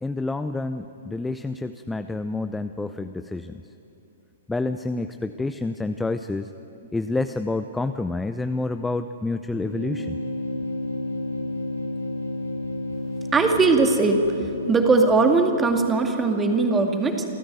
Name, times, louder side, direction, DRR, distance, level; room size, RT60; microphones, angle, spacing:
voice 1, 0.0-3.6 4.5-6.5 6.9-10.2, left 2 dB, 5° left, 9 dB, 0.6 m, -28 dB
sound 1, 9.5-16.2, left 1 dB, 80° left, 4.4 m, -32 dB
voice 2, 13.3-14.3 14.7-17.2, right 3 dB, 15° right, 5 dB, 2.2 m, -19 dB
28.0 x 14.0 x 9.3 m, 2.9 s
figure-of-eight pair, 110°, 0 cm